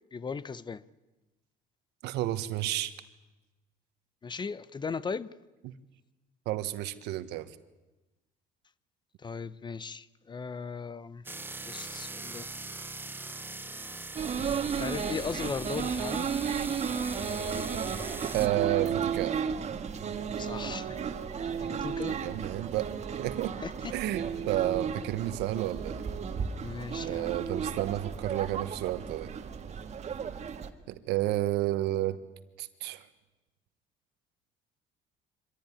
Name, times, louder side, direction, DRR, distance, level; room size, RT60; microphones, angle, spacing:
voice 1, 0.1-0.8 4.2-5.3 9.2-11.2 11.7-12.5 14.8-16.3 20.4-21.0 21.6-22.2 23.6-23.7 26.6-27.4, left 5 dB, 25° left, 0.7 m, -37 dB
voice 2, 2.0-2.9 5.6-5.7 6.4-7.5 18.3-19.3 22.1-22.9 23.2-23.6 23.9-26.0 27.0-29.3 30.9-32.2 32.6-33.1, right 15 dB, 85° right, 1.4 m, -31 dB
sound 1, 11.3-18.5, right 3 dB, 10° right, 1.1 m, -41 dB
sound 2, 14.2-30.7, right 6 dB, 40° right, 1.7 m, -34 dB
25.0 x 16.0 x 10.0 m
cardioid pair, 110°, 17 cm